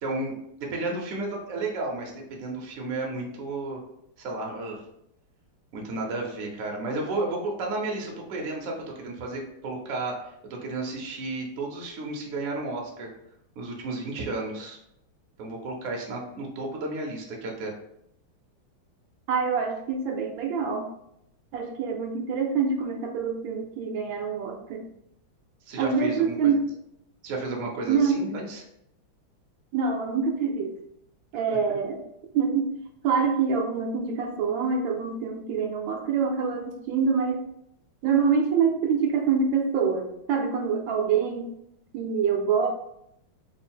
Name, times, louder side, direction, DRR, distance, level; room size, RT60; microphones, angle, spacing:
voice 1, 0.0-3.8 4.2-4.8 5.7-13.1 13.6-14.8 15.4-17.7 25.7-26.5 27.2-28.6 31.5-31.6, right 2 dB, 60° right, 0 dB, 0.9 m, -32 dB
voice 2, 19.3-20.9 21.5-24.8 25.8-26.6 27.9-28.3 29.7-30.7 31.3-32.0 32.3-32.7 33.0-37.5 38.0-41.5 41.9-42.7, right 6 dB, 75° right, 2 dB, 1.3 m, -25 dB
3.8 x 2.1 x 4.2 m, 0.77 s
omnidirectional pair, 2.2 m